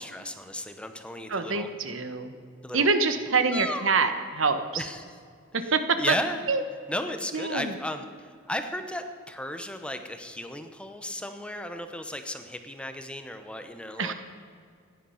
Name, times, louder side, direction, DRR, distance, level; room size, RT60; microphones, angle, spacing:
voice 1, 0.0-1.7 2.6-2.9 3.5-3.9 4.8-5.2 5.6-6.4 6.9-14.1, left 1 dB, 5° left, 7 dB, 0.8 m, -35 dB
voice 2, 1.3-2.3 2.7-4.8 5.7-5.8 6.1-6.2 6.5-6.6 7.3-7.7 14.0-14.1, right 4 dB, 70° right, 9 dB, 1.1 m, -25 dB
16.0 x 10.5 x 5.7 m, 2.2 s
head